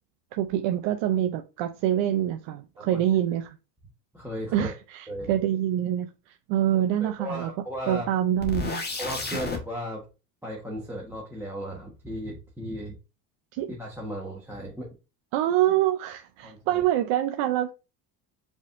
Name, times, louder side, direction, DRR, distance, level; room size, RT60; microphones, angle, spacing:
voice 1, 0.3-3.6 4.5-7.5 7.9-8.8 13.5-13.7 15.3-17.7, right 12 dB, 60° right, 0.6 m, -26 dB
voice 2, 4.1-4.7 5.1-5.3 7.0-8.0 9.0-10.0 10.4-12.9 13.7-14.9 16.4-16.8, equal, 5° right, 1.2 m, -35 dB
sound 1, 8.4-9.6, left 4 dB, 20° left, 1.3 m, -31 dB
5.0 x 3.6 x 2.5 m
supercardioid pair, 105°, 50 cm